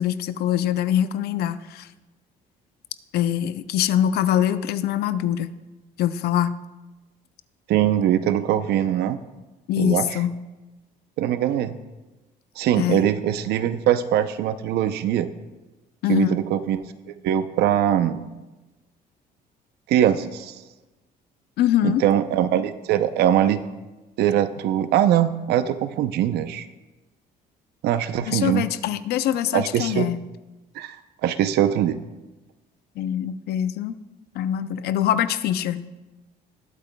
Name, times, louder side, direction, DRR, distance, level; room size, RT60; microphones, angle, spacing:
voice 1, 0.0-1.9 3.1-5.5 6.0-6.6 9.7-10.4 12.8-13.0 16.0-16.4 21.6-22.0 28.3-30.2 33.0-33.9 34.3-35.9, left 11 dB, 75° left, 13 dB, 0.6 m, -23 dB
voice 2, 7.7-9.2 9.8-10.2 11.2-11.8 12.6-15.3 16.1-18.3 19.9-20.5 21.8-23.6 24.2-26.7 27.8-28.7 29.5-30.1 30.8-31.0 31.2-32.0, right 11 dB, 75° right, 12 dB, 0.6 m, -22 dB
20.0 x 8.5 x 2.3 m, 1.1 s
cardioid pair, 110°, 17 cm